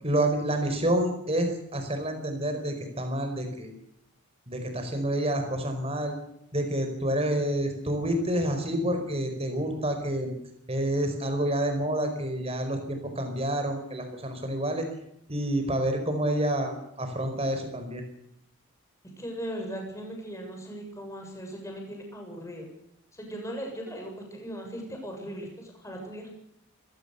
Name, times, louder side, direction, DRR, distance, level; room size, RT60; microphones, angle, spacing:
voice 1, 0.0-3.7 4.5-6.2 6.5-10.3 10.7-14.9 15.3-18.0, right 1 dB, 25° right, 6 dB, 4.8 m, -28 dB
voice 2, 19.2-22.6 23.1-26.3, equal, 15° left, 2 dB, 7.3 m, -38 dB
26.0 x 17.5 x 7.0 m, 0.77 s
head